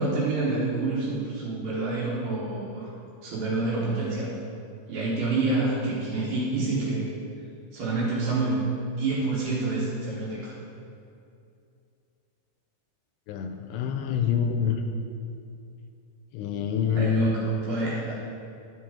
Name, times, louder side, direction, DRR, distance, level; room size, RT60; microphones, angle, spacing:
voice 1, 0.0-2.9 3.2-4.3 4.9-7.1 7.7-8.6 8.9-10.5 17.0-18.1, right 3 dB, 70° right, -6 dB, 2.4 m, -27 dB
voice 2, 13.3-14.8 16.3-17.3, left 6 dB, 85° left, 5 dB, 2.6 m, -26 dB
10.5 x 6.6 x 3.7 m, 2.5 s
omnidirectional pair, 5.1 m